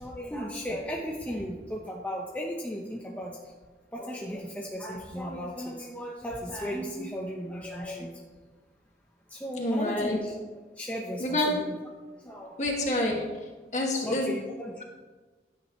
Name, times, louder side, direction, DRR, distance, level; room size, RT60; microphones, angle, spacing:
voice 1, 0.0-3.4 3.9-8.1 9.3-10.3 10.8-11.7 12.2-12.6 14.0-14.8, equal, 10° left, -2 dB, 0.9 m, -35 dB
voice 2, 9.6-10.2 11.2-11.5 12.6-13.2 13.7-14.3, left 1 dB, 40° left, -1 dB, 2.1 m, -27 dB
16.0 x 9.5 x 3.3 m, 1.3 s
head